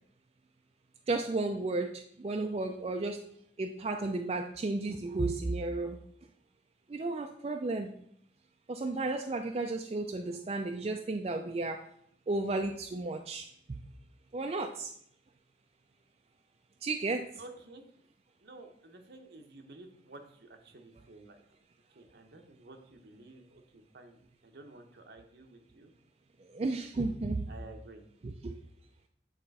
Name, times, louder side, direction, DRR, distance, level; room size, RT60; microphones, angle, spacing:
voice 1, 1.1-3.2 3.6-6.0 6.9-7.9 8.7-11.8 12.3-13.8 14.3-14.9 16.8-17.3 26.5-27.5 28.2-28.5, right 2 dB, 35° right, 3 dB, 0.4 m, -33 dB
voice 2, 17.4-17.8 18.4-21.4 21.9-25.9 27.5-28.0, right 2 dB, 65° right, 5 dB, 0.9 m, -52 dB
8.5 x 3.3 x 4.1 m, 0.69 s
head